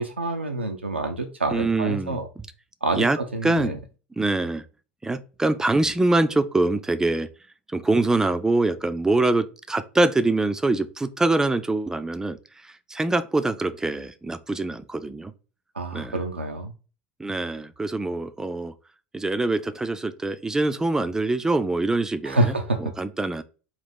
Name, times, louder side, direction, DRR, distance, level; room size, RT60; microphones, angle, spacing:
voice 1, 0.0-2.3 2.8-3.8 15.8-16.7 22.2-22.9, right 2 dB, 90° right, 0.4 m, -27 dB
voice 2, 1.5-2.5 3.0-3.8 4.2-4.6 5.0-7.3 7.7-12.4 12.6-15.3 15.9-16.2 17.2-18.7 19.1-22.5 22.8-23.4, right 2 dB, 10° right, 0.3 m, -24 dB
3.9 x 2.5 x 3.5 m
figure-of-eight pair, 75°, 6 cm